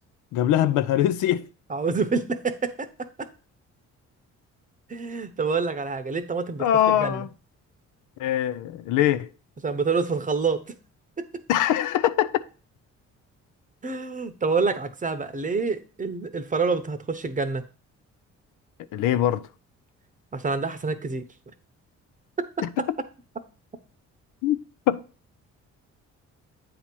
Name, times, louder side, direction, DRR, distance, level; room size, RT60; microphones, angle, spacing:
voice 1, 0.3-1.5 6.6-7.3 8.2-9.3 11.5-12.4 18.9-19.4 22.6-22.7 24.4-24.6 24.9-25.0, left 11 dB, 85° left, 0.5 m, -22 dB
voice 2, 1.7-3.3 4.9-7.3 9.6-10.6 11.2-11.3 13.8-17.6 20.3-21.2 22.8-22.9, right 4 dB, 25° right, 0.8 m, -27 dB
8.6 x 2.9 x 6.0 m
cardioid pair, 90°, 30 cm